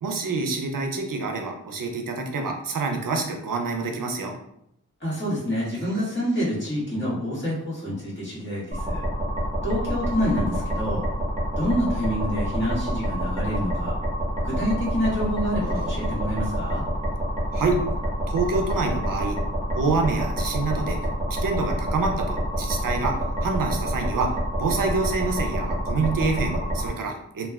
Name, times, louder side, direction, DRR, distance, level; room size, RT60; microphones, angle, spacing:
voice 1, 0.0-4.3 17.5-17.8 18.3-19.4 19.7-21.0 21.4-23.1 23.4-24.3 24.6-27.5, right 4 dB, 85° right, 3 dB, 0.5 m, -26 dB
voice 2, 5.0-9.0 9.6-11.0 11.6-13.9 14.4-16.8, equal, 35° left, -8 dB, 1.5 m, -27 dB
sound 1, 8.7-26.9, equal, 20° right, 0.8 m, -27 dB
3.2 x 2.2 x 2.3 m, 0.74 s
wide cardioid pair, 55°, 32 cm